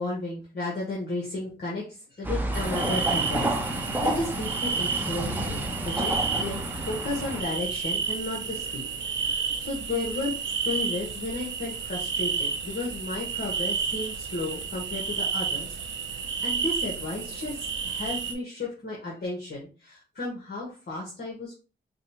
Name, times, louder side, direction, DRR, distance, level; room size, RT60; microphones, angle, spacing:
voice 1, 0.0-21.6, left 2 dB, 55° left, -4 dB, 1.4 m, -34 dB
sound 1, 2.2-7.4, right 1 dB, 10° right, 0.8 m, -30 dB
sound 2, 2.5-18.3, right 5 dB, 65° right, 0.7 m, -31 dB
5.0 x 2.4 x 2.9 m, 0.35 s
cardioid pair, 60°, 20 cm